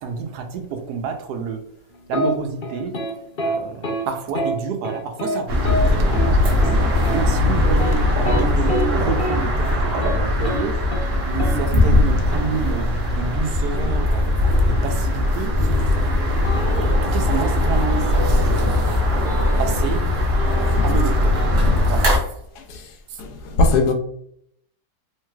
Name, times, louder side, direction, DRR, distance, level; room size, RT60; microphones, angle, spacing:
voice 1, 0.0-1.6 2.1-3.0 3.4-6.8 7.1-8.0 8.3-10.8 11.3-14.3 14.7-15.5 17.0-19.0 19.6-20.1 20.8-21.4 21.9-22.2 23.1-23.2, right 6 dB, 90° right, 1.2 m, -29 dB
sound 1, 2.1-2.3 2.6-3.1 3.4-3.6 3.8-4.0 4.3-4.5 4.8-5.4 5.6-5.8 6.1-6.3 6.6-6.8 7.0-7.2 7.7-8.9 9.2-9.3 9.7-10.2 10.4-10.6 10.9-11.1 11.4-11.5 13.7-14.5 16.4-17.2 18.0-18.8 19.3-20.1 20.3-21.5, equal, 45° left, 0.8 m, -28 dB
sound 2, 5.5-22.2, left 1 dB, 50° right, 0.8 m, -19 dB
voice 2, 23.2-23.9, left 2 dB, 85° left, 1.2 m, -19 dB
3.2 x 3.1 x 2.3 m
omnidirectional pair, 1.7 m